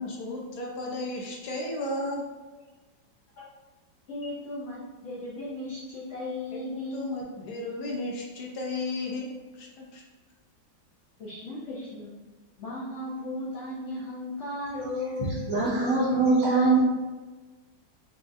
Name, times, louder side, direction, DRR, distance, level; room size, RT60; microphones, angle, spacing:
voice 1, 0.0-2.2 6.5-9.3 9.5-10.0, left 2 dB, 70° left, -1 dB, 1.1 m, -34 dB
voice 2, 4.1-7.0 11.2-12.1 12.6-15.4, left 2 dB, 90° left, -7 dB, 0.6 m, -36 dB
voice 3, 15.5-16.8, right 3 dB, 70° right, -6 dB, 0.8 m, -22 dB
4.7 x 2.3 x 2.5 m, 1.3 s
omnidirectional pair, 2.0 m